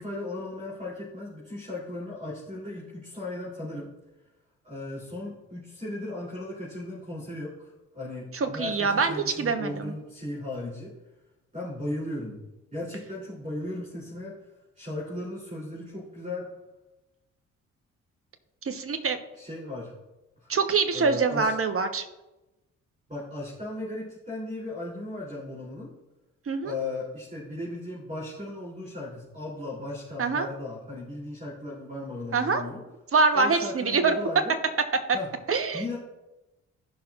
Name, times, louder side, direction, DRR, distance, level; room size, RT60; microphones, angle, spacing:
voice 1, 0.0-3.9 4.6-10.9 11.5-12.4 12.7-14.4 14.7-16.5 19.3-19.9 20.4-20.5 20.9-21.5 23.1-25.9 26.6-32.8 33.3-34.5 35.1-35.3 35.7-36.0, left 2 dB, 20° right, -5 dB, 3.4 m, -36 dB
voice 2, 8.3-9.9 18.6-19.2 20.5-22.0 26.5-26.7 30.2-30.5 32.3-32.6 33.1-34.1 35.5-35.8, right 4 dB, 35° right, 7 dB, 1.1 m, -24 dB
16.0 x 5.9 x 2.5 m, 1.0 s
figure-of-eight pair, 45°, 37 cm